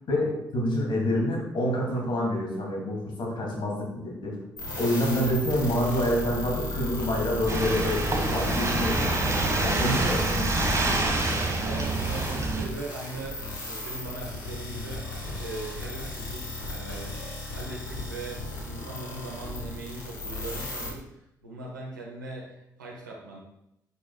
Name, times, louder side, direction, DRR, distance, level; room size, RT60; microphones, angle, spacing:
voice 1, 0.1-4.4 4.6-10.5, equal, 55° left, -2 dB, 2.5 m, -27 dB
sound 1, 4.6-20.9, left 2 dB, 90° left, 1.0 m, -35 dB
sound 2, 7.5-12.7, right 2 dB, 30° right, 1.3 m, -27 dB
voice 2, 11.5-15.0 15.4-17.1 17.5-21.0 21.4-23.4, right 2 dB, 85° right, -2 dB, 1.1 m, -40 dB
9.5 x 5.4 x 2.3 m, 0.83 s
figure-of-eight pair, 40°, 10 cm